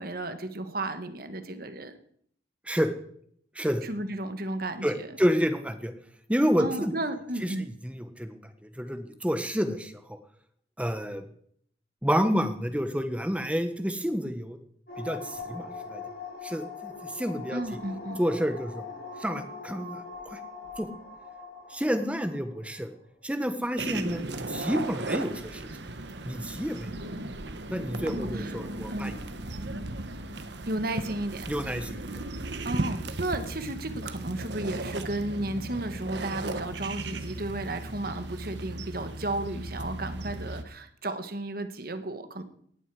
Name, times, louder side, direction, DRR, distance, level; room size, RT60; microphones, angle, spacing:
voice 1, 0.0-2.0 3.8-5.1 6.6-7.7 17.5-18.2 28.1-28.6 28.9-29.2 30.7-31.5 32.6-42.4, right 1 dB, 50° right, 9 dB, 1.6 m, -33 dB
voice 2, 4.8-5.9 6.3-6.9 7.4-7.5 7.8-8.4 8.8-10.2 10.8-11.2 12.0-14.6 15.0-16.0 16.4-17.8 18.2-18.8 19.2-20.4 20.8-20.9 21.7-22.9 23.2-25.7 26.2-27.1 27.7-29.2 31.5-32.1, equal, 5° right, 8 dB, 1.3 m, -29 dB
sound 1, 14.9-23.0, left 4 dB, 55° left, 6.9 m, -42 dB
sound 2, 23.8-40.6, right 2 dB, 65° right, 1.3 m, -36 dB
18.5 x 14.0 x 5.0 m, 0.66 s
head